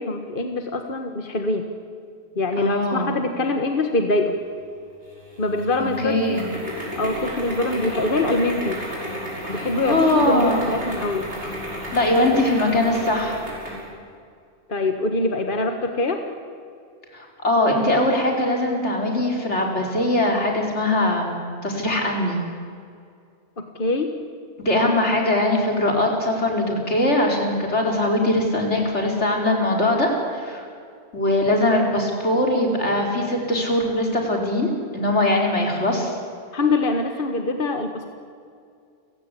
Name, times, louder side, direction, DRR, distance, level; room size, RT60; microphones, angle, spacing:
voice 1, 0.0-1.7 2.4-4.4 5.4-6.4 7.0-8.8 9.5-11.3 14.7-16.2 23.6-24.2 36.5-38.1, left 2 dB, 50° left, 5 dB, 1.7 m, -24 dB
voice 2, 2.6-3.1 6.0-6.5 9.5-10.6 11.9-13.4 17.1-22.4 24.6-30.6 31.1-36.1, left 1 dB, 85° left, 1 dB, 4.6 m, -21 dB
sound 1, 5.1-13.9, equal, 80° right, 7.1 m, -33 dB
29.5 x 16.5 x 8.5 m, 2.3 s
omnidirectional pair, 1.1 m